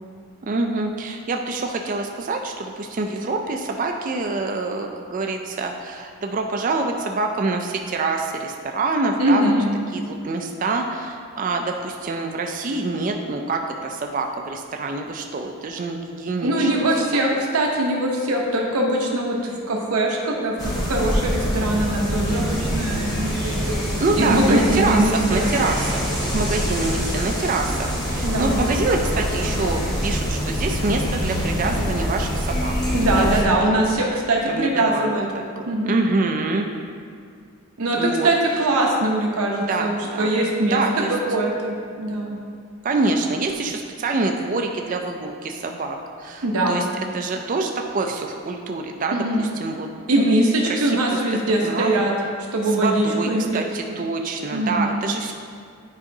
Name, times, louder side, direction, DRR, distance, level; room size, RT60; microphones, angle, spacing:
voice 1, 0.4-9.5 9.9-16.9 17.3-17.4 24.0-33.2 33.6-33.8 34.5-35.1 35.6-36.7 37.9-38.3 39.7-40.3 40.7-41.1 42.8-46.9 47.1-49.9 50.7-51.2 51.6-52.0 52.8-53.3 53.5-55.3, right 3 dB, 35° right, 3 dB, 0.3 m, -26 dB
voice 2, 9.2-9.7 16.4-23.8 24.2-25.5 28.2-28.6 32.9-35.2 35.7-36.0 37.8-40.8 41.1-42.4 46.4-46.9 49.1-49.5 50.1-52.1 52.5-53.6 54.5-55.0, right 1 dB, 80° right, -1 dB, 0.9 m, -22 dB
sound 1, 20.6-33.4, equal, 20° left, 1.2 m, -25 dB
9.6 x 4.8 x 2.7 m, 2.2 s
head